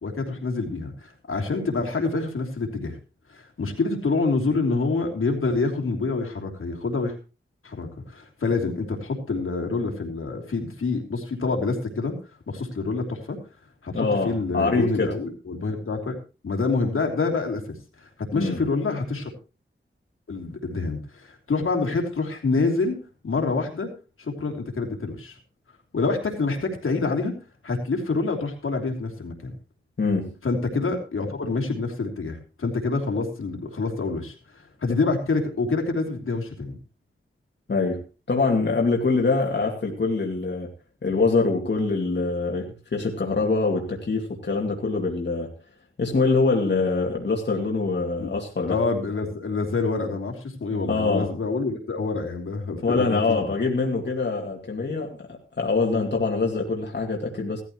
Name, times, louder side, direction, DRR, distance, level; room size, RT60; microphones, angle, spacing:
voice 1, 0.0-3.0 3.3-7.1 7.6-12.2 12.5-13.4 13.8-16.2 16.4-17.6 18.0-19.3 20.3-23.0 23.2-23.9 24.2-25.4 25.9-27.3 27.6-29.5 30.4-36.8 48.2-48.3 48.7-53.4, left 3 dB, 80° left, 2 dB, 3.1 m, -27 dB
voice 2, 13.9-15.1 18.3-18.6 30.0-30.3 37.7-38.0 38.3-40.7 41.0-45.5 46.0-48.8 50.9-51.3 52.8-57.6, left 3 dB, 55° left, 0 dB, 2.4 m, -24 dB
17.0 x 13.5 x 3.1 m, 0.31 s
wide cardioid pair, 105°, 21 cm